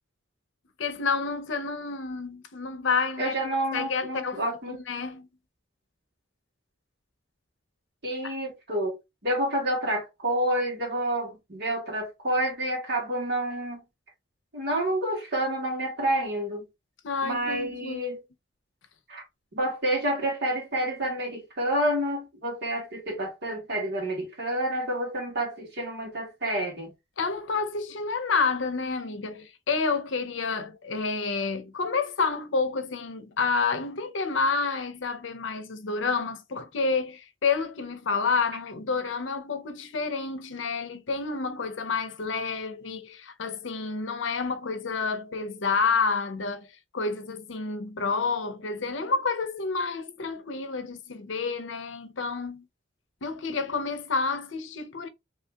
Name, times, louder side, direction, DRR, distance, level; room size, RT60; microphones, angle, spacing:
voice 1, 0.8-3.3 3.7-4.4 4.7-5.3 8.2-8.3 17.0-18.0 27.2-46.7 46.9-52.7 53.2-55.1, left 4 dB, 70° left, 0.7 m, -29 dB
voice 2, 3.2-4.8 8.0-13.8 14.5-16.7 17.2-18.2 19.1-19.2 19.5-26.9, right 1 dB, 55° right, 1.8 m, -29 dB
3.0 x 2.8 x 3.4 m
head